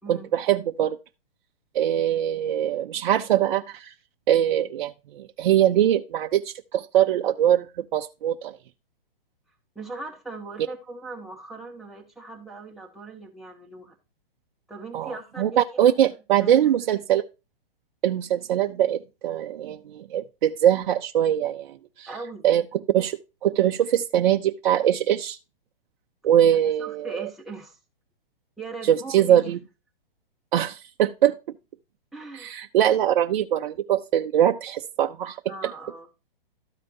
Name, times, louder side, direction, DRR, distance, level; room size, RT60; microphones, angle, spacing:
voice 1, 0.1-1.0 1.7-3.9 4.3-8.6 14.9-17.2 18.0-22.1 22.4-22.6 22.9-25.4 26.2-27.2 28.8-29.6 30.5-31.3 32.3-35.4, right 11 dB, 55° right, 0.6 m, -22 dB
voice 2, 9.7-13.9 14.7-15.8 16.4-16.6 22.1-22.5 26.8-27.8 28.6-29.5 32.1-32.6 35.5-36.1, right 3 dB, ahead, 1.5 m, -39 dB
13.0 x 5.0 x 2.6 m
hypercardioid pair, 140°, 29 cm